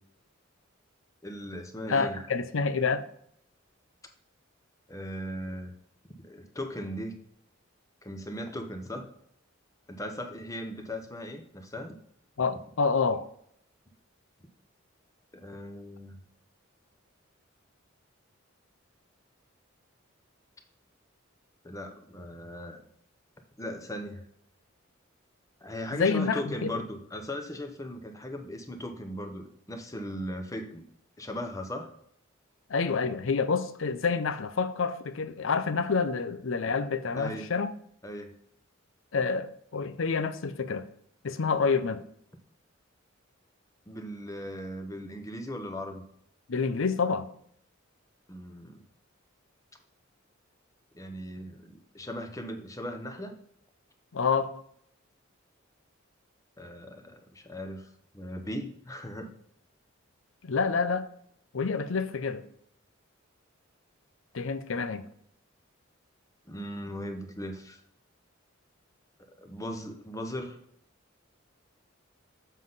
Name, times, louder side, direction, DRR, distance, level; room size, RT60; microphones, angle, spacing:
voice 1, 1.2-2.3 4.9-5.7 6.2-7.2 8.0-9.1 9.9-11.9 15.3-16.2 21.6-22.8 23.6-24.3 25.6-30.8 31.2-31.9 37.1-37.5 38.0-38.3 43.9-46.0 48.3-48.8 50.9-53.3 56.6-59.3 66.5-67.8 69.3-70.6, equal, 15° left, 0.8 m, -38 dB
voice 2, 1.9-3.0 12.4-13.2 25.9-26.7 32.7-37.7 39.1-40.9 41.2-42.0 46.5-47.3 54.1-54.5 60.4-61.1 61.5-62.4 64.3-65.0, left 5 dB, 75° left, 0.6 m, -28 dB
7.3 x 5.5 x 4.0 m
head